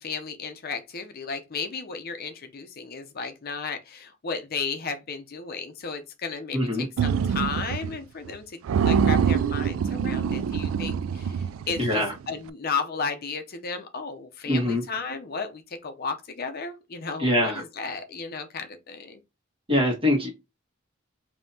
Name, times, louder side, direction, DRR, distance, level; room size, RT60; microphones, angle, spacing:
voice 1, 0.0-19.2, left 5 dB, 50° left, 0.6 m, -34 dB
voice 2, 6.5-6.8 11.8-12.1 14.5-14.8 17.2-17.6 19.7-20.3, left 1 dB, 25° right, 1.6 m, -23 dB
sound 1, 7.0-8.0 8.3-8.4 8.7-12.1, right 7 dB, 85° right, 0.3 m, -25 dB
5.3 x 2.8 x 2.7 m
head